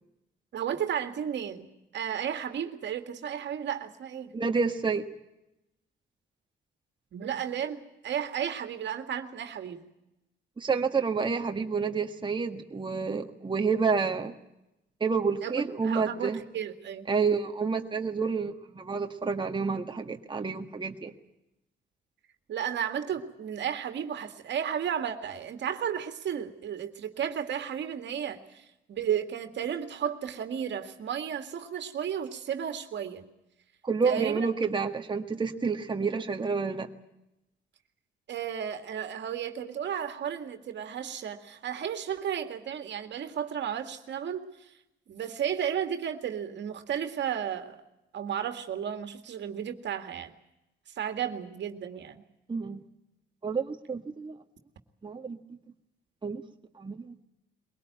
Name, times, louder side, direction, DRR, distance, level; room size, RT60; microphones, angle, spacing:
voice 1, 0.5-4.3 7.1-9.8 15.4-17.1 22.5-33.3 34.0-34.4 38.3-44.4 45.1-47.8 48.1-50.3 51.0-52.2, right 8 dB, 65° right, 7 dB, 2.1 m, -33 dB
voice 2, 4.3-5.0 10.6-14.3 15.0-16.4 17.1-21.1 33.8-36.9 52.5-52.8 53.4-54.4 55.0-55.4 56.2-56.4 56.8-57.1, right 5 dB, 25° right, 4 dB, 1.6 m, -29 dB
22.5 x 18.0 x 9.2 m, 0.91 s
cardioid pair, 90°, 20 cm